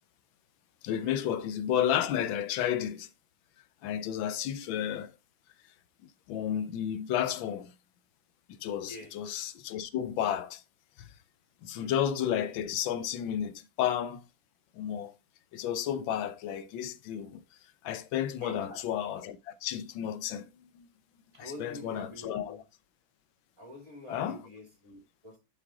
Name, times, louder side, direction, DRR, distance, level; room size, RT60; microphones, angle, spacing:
voice 1, 0.8-3.1 3.8-5.1 6.3-7.7 8.6-10.6 11.0-11.1 11.6-14.2 14.8-15.2 15.5-17.4 17.8-20.5 20.7-20.9 21.4-22.6 24.1-24.4, left 10 dB, 90° left, 1.5 m, -32 dB
voice 2, 8.8-9.2 11.7-11.9 18.4-18.9 21.3-22.6 23.6-25.4, left 1 dB, 15° right, 3.1 m, -46 dB
7.7 x 6.0 x 3.6 m
omnidirectional pair, 2.1 m